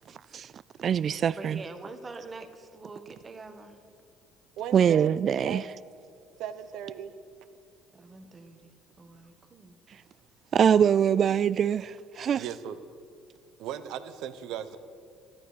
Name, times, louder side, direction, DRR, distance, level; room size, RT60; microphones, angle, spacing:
voice 1, 0.8-1.6 4.7-5.6 10.5-12.4, right 8 dB, 50° right, 0.3 m, -23 dB
voice 2, 1.4-3.8 7.9-8.7 9.0-9.8, right 3 dB, 30° right, 1.7 m, -45 dB
voice 3, 4.6-5.2 5.4-5.6 6.4-7.1 12.3-12.8 13.6-14.8, right 9 dB, 70° right, 1.0 m, -37 dB
13.0 x 12.0 x 6.7 m
hypercardioid pair, 65°, 0 cm